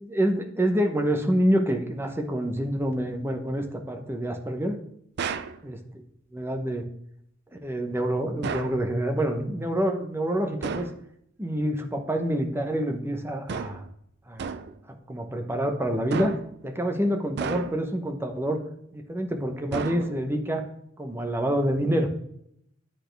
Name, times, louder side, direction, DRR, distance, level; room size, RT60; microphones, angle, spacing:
voice 1, 0.0-4.8 5.6-5.8 6.3-6.8 7.5-10.9 11.4-13.8 14.3-14.6 15.1-16.3 16.6-18.6 18.9-20.6 21.0-22.1, right 1 dB, 10° right, 4 dB, 0.9 m, -27 dB
sound 1, 5.2-5.6 8.4-8.8 10.6-11.0 13.5-13.9 14.4-14.8 16.1-16.6 17.4-18.0 19.7-20.4, right 5 dB, 60° right, 0.4 m, -33 dB
10.0 x 4.2 x 3.4 m, 0.73 s
head